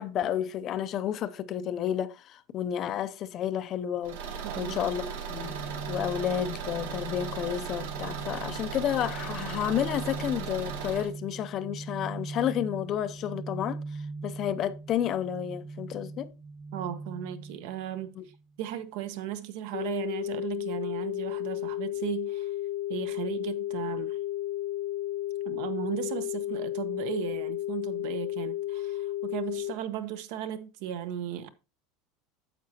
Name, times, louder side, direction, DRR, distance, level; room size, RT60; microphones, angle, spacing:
voice 1, 0.0-4.2 4.6-5.6 5.9-13.8 14.2-16.3 18.2-18.3, left 10 dB, 35° left, 0.5 m, -31 dB
Car / Engine, 4.0-11.1, right 6 dB, 85° right, 1.4 m, -37 dB
voice 2, 4.4-4.9 16.7-18.1 18.6-22.5 22.9-24.2 25.4-31.5, right 11 dB, 65° right, 0.9 m, -36 dB
sound 1, 5.4-18.4, right 3 dB, 35° right, 1.3 m, -41 dB
sound 2, 19.7-29.7, left 14 dB, 80° left, 0.9 m, -33 dB
9.4 x 7.3 x 2.8 m
supercardioid pair, 160°, 0 cm